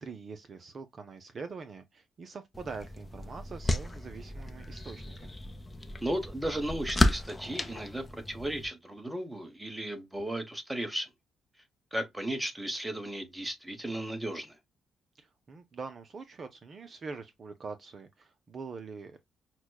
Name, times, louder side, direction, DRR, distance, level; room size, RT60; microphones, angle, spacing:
voice 1, 0.0-5.4 15.1-19.2, right 4 dB, 45° right, 0.5 m, -44 dB
sound 1, 2.5-8.7, left 1 dB, 20° left, 0.6 m, -33 dB
voice 2, 6.0-11.1 11.9-14.6, right 1 dB, 10° right, 1.0 m, -35 dB
5.9 x 2.2 x 2.2 m
cardioid pair, 90°, 0 cm